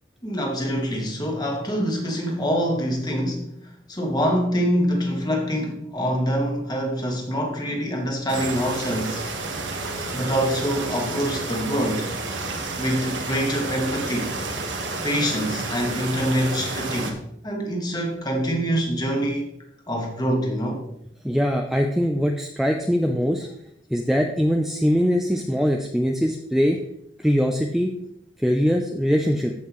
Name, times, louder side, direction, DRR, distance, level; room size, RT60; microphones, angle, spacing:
voice 1, 0.2-9.3 10.1-12.1 12.8-14.3 15.0-17.2 17.4-19.5 19.9-20.8, equal, 20° left, 1.5 m, -25 dB
sound 1, 8.3-17.1, right 3 dB, 85° right, 1.4 m, -30 dB
voice 2, 21.2-23.5 23.9-26.8 27.2-27.9 28.4-29.5, equal, ahead, 0.5 m, -22 dB
14.0 x 5.6 x 3.1 m
head